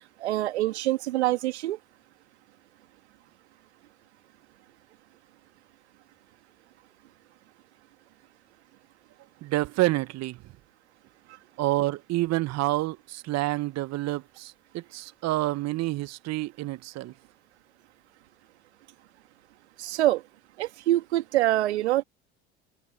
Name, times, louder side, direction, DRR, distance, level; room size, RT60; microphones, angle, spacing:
voice 1, 0.2-1.8 19.8-20.2 20.6-22.0, right 15 dB, 75° right, 2.0 m, -25 dB
voice 2, 9.4-10.5 11.6-17.1, right 17 dB, 50° right, 1.2 m, -28 dB
hypercardioid pair, 70°, 33 cm